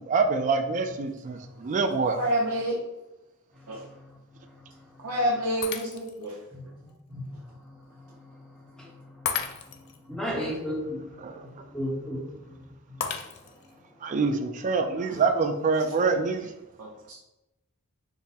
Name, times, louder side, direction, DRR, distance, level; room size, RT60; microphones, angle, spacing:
voice 1, 0.0-2.2 11.2-11.5 14.0-16.5, right 4 dB, 35° right, 7 dB, 0.3 m, -25 dB
voice 2, 2.2-2.8 3.7-3.8 5.0-6.4 15.1-15.2 16.8-17.1, right 1 dB, 75° right, -6 dB, 0.6 m, -28 dB
voice 3, 3.5-4.2 4.5-4.7 6.5-7.2 7.5-9.3 9.7-12.6 12.9-13.0, equal, 5° left, -4 dB, 0.8 m, -37 dB
Shatter, 5.6-6.3 6.9-7.0 9.3-10.0 13.0-13.7, left 7 dB, 50° left, 0.3 m, -33 dB
3.5 x 2.0 x 4.1 m, 0.94 s
head